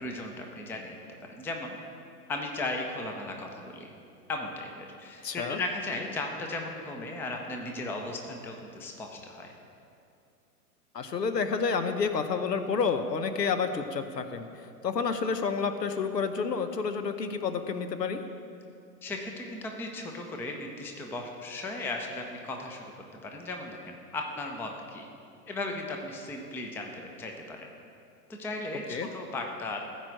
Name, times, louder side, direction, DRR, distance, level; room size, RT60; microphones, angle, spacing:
voice 1, 0.0-1.8 2.3-3.9 4.3-9.5 19.0-22.9 23.2-25.1 25.5-27.7 28.3-29.8, left 2 dB, 5° left, 2 dB, 0.5 m, -36 dB
voice 2, 5.2-5.6 10.9-14.5 14.8-18.2 28.9-29.1, left 5 dB, 85° left, 8 dB, 1.0 m, -29 dB
14.5 x 4.8 x 7.8 m, 2.5 s
figure-of-eight pair, 105°, 48 cm